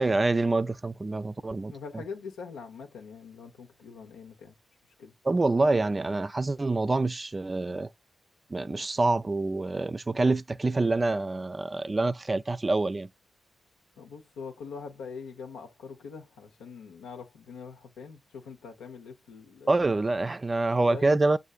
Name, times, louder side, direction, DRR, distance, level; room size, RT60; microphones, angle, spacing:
voice 1, 0.0-1.7 5.2-7.9 8.5-13.1 19.7-21.4, right 2 dB, 35° right, 0.4 m, -26 dB
voice 2, 1.7-4.5 5.0-5.1 14.0-19.8 20.8-21.0, left 5 dB, 85° left, 0.9 m, -43 dB
6.4 x 2.5 x 2.4 m
supercardioid pair, 40°, 0 cm